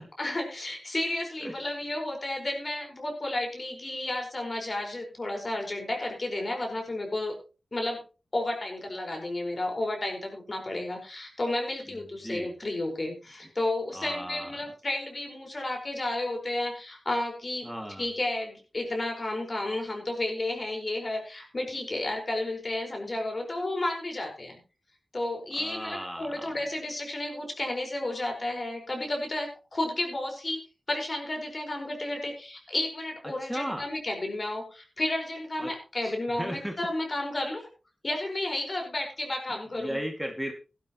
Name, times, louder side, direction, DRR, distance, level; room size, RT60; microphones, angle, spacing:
voice 1, 0.2-7.3 7.7-8.0 8.3-17.7 18.0-24.6 25.1-30.6 30.9-37.7 38.0-40.0, left 1 dB, 45° left, 2 dB, 5.0 m, -32 dB
voice 2, 11.9-12.5 13.9-14.5 17.6-18.1 25.6-26.6 33.2-33.9 35.6-35.7 36.0-36.7 39.7-40.5, equal, 5° right, 2 dB, 2.3 m, -36 dB
15.5 x 12.5 x 3.1 m, 0.33 s
cardioid pair, 60°, 0 cm